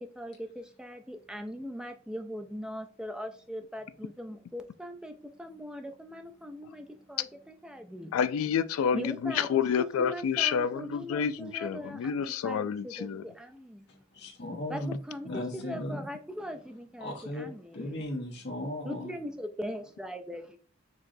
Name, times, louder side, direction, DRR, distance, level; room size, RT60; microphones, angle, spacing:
voice 1, 0.0-8.1 8.9-12.1 12.4-13.9 14.7-14.8 15.1-17.9 18.8-20.6, equal, 5° right, 0.3 m, -40 dB
voice 2, 8.1-13.2, left 7 dB, 80° left, 0.3 m, -29 dB
voice 3, 13.9-16.1 17.0-19.1, left 1 dB, 50° left, 1.0 m, -37 dB
4.5 x 3.0 x 2.6 m
head